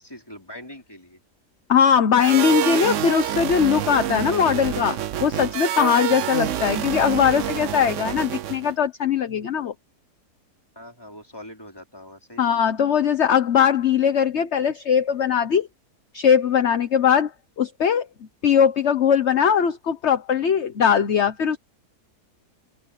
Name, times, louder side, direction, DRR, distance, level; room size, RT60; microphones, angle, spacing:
voice 1, 0.1-1.2 10.7-12.9, left 1 dB, 15° left, 4.8 m, -43 dB
voice 2, 1.7-9.7 12.4-15.7 16.1-17.3 17.6-18.1 18.4-21.6, left 8 dB, 50° left, 1.3 m, -20 dB
sound 1, 2.2-8.7, right 10 dB, 60° right, 0.9 m, -27 dB
open air
omnidirectional pair, 1.7 m